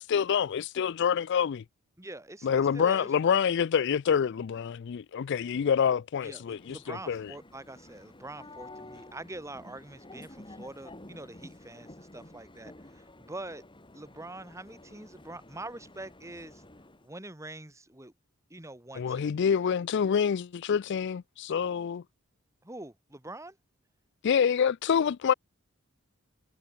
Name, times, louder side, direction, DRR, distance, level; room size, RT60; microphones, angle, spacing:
voice 1, 0.0-1.6 2.4-7.3 19.0-22.0 24.2-25.3, left 7 dB, 60° left, 0.4 m, -27 dB
voice 2, 2.0-3.1 6.2-13.6 13.9-16.6 17.0-18.1 18.5-19.4 22.6-23.6, right 2 dB, 15° right, 2.5 m, -44 dB
sound 1, 6.3-17.1, left 1 dB, 25° left, 3.6 m, -51 dB
head